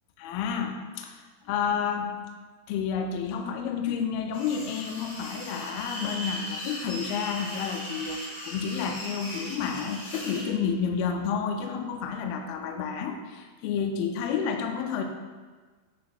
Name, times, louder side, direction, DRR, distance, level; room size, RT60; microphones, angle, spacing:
voice 1, 0.2-2.1 2.7-15.0, left 6 dB, 80° left, 3 dB, 2.3 m, -30 dB
sound 1, 4.3-10.5, left 1 dB, 50° left, 1.5 m, -38 dB
8.5 x 8.5 x 2.3 m, 1.4 s
omnidirectional pair, 4.6 m